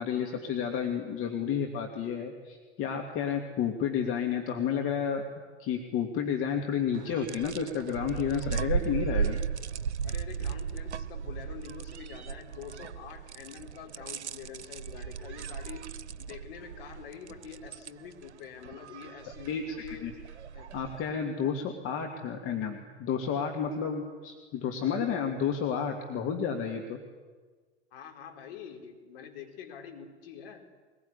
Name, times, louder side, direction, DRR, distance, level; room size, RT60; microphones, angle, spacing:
voice 1, 0.0-5.2 5.6-9.4 19.5-19.6 20.0-20.1 20.7-27.0, left 7 dB, 40° left, 4 dB, 2.4 m, -31 dB
sound 1, 6.9-21.1, right 7 dB, 70° right, 0.9 m, -36 dB
voice 2, 10.0-15.9 16.2-20.1 20.5-20.7 27.9-30.7, left 7 dB, 55° left, 3 dB, 4.3 m, -46 dB
22.0 x 21.0 x 9.8 m, 1.4 s
figure-of-eight pair, 90°, 34 cm